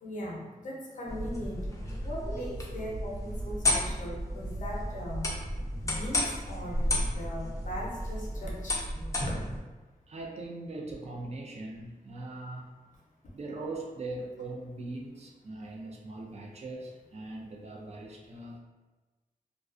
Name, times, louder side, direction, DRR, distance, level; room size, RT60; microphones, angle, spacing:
voice 1, 0.0-5.3 5.8-8.9, equal, 60° left, -3 dB, 0.6 m, -39 dB
sound 1, 1.1-9.6, left 1 dB, 20° left, 0.4 m, -32 dB
voice 2, 10.1-12.7 13.3-18.6, right 2 dB, 45° right, -1 dB, 0.4 m, -40 dB
2.3 x 2.3 x 2.4 m, 1.2 s
wide cardioid pair, 135°, 15 cm